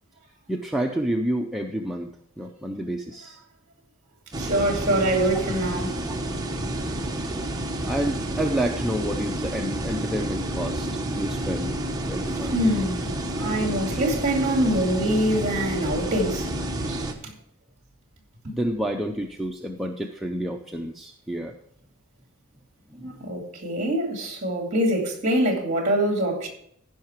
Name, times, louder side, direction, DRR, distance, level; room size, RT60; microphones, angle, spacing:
voice 1, 0.5-2.1 2.4-3.4 7.9-10.9 11.1-11.8 12.1-12.6 18.5-21.6 22.9-23.1, right 1 dB, ahead, 0.5 m, -29 dB
sound 1, 4.3-17.1, right 1 dB, 20° right, 0.9 m, -29 dB
voice 2, 4.4-6.0 12.5-16.5 16.9-17.1 18.4-18.5 23.0-26.5, right 1 dB, 35° right, 2.5 m, -24 dB
14.5 x 5.7 x 4.5 m
head